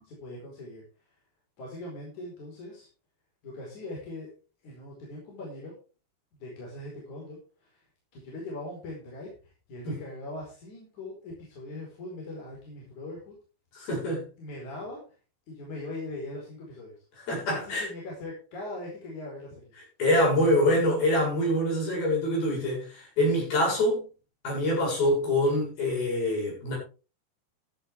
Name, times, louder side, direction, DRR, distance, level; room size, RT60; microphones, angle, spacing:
voice 1, 0.0-0.8 1.6-2.9 3.4-4.3 4.6-5.7 6.4-7.8 8.1-13.3 14.4-15.0 15.5-17.0 17.5-19.7, left 2 dB, 45° left, 6.1 m, -40 dB
voice 2, 13.7-14.3 17.2-17.9 20.0-24.0 24.4-26.8, left 1 dB, 65° left, 9.5 m, -25 dB
14.0 x 12.0 x 3.6 m
omnidirectional pair, 4.7 m